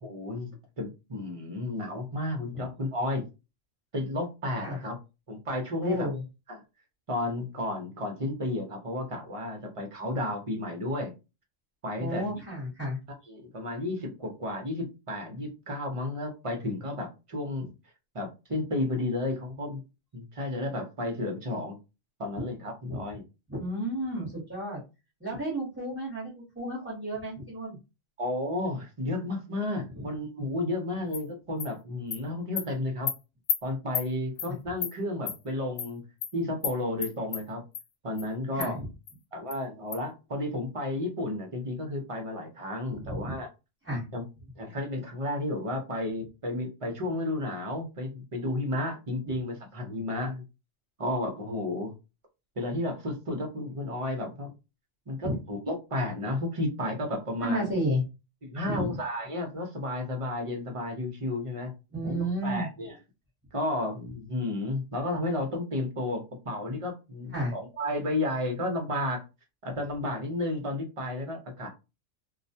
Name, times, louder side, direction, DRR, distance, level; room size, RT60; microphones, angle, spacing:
voice 1, 0.0-3.2 3.9-5.0 5.3-6.1 6.5-6.6 7.1-11.1 11.8-12.4 13.3-17.7 18.1-19.8 20.1-21.8 22.2-23.2 28.2-33.1 33.6-36.0 36.3-37.6 38.0-38.8 39.3-43.5 44.1-44.2 44.6-50.4 51.0-51.9 52.6-54.5 55.1-57.7 58.4-61.7 62.0-63.0 63.5-69.2 69.6-71.7, left 1 dB, 35° right, 2 dB, 0.5 m, -32 dB
voice 2, 5.8-6.2 12.0-13.0 22.4-22.5 22.9-23.0 23.5-24.8 25.2-27.8 29.9-30.0 38.5-38.9 42.9-43.4 43.8-44.1 49.2-49.3 55.2-55.4 57.4-58.0 58.6-59.0 61.9-62.7 67.3-67.6, right 1 dB, 10° right, -5 dB, 0.8 m, -32 dB
Animal, 31.1-31.2 31.6-31.7 32.1-32.2 32.6-32.7 33.1-33.2 33.5-33.6 33.9-34.1 34.4-34.5 34.8-34.9 35.3-35.4 35.8-35.9 36.2-36.3 36.6-36.7 37.0-37.4 37.7-37.8 38.2-38.3 38.6-38.7 39.1-39.2 39.5-39.6 39.9-40.0, left 7 dB, 85° left, 1.0 m, -31 dB
2.3 x 2.1 x 2.6 m, 0.28 s
omnidirectional pair, 1.3 m